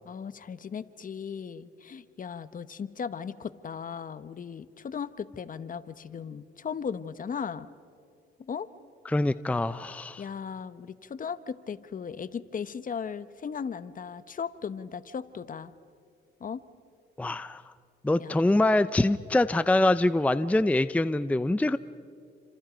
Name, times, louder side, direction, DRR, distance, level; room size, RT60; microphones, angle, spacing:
voice 1, 0.1-7.7 8.4-8.7 10.2-15.7 16.4-16.6 18.2-18.4, left 6 dB, 45° left, 14 dB, 1.1 m, -37 dB
voice 2, 9.1-10.2 17.2-17.6 18.0-21.8, left 2 dB, 5° left, 13 dB, 0.6 m, -24 dB
29.0 x 27.0 x 5.2 m, 2.4 s
cardioid pair, 90°, 20 cm